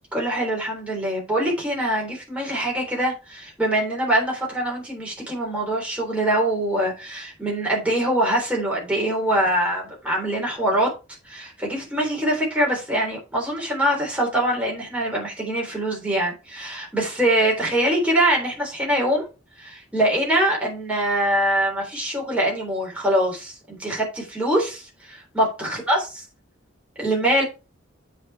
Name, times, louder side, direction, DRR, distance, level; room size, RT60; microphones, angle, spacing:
voice 1, 0.1-10.9 11.3-19.3 19.6-26.2 27.0-27.4, right 1 dB, 5° right, 3.6 m, -23 dB
8.1 x 5.8 x 4.7 m
head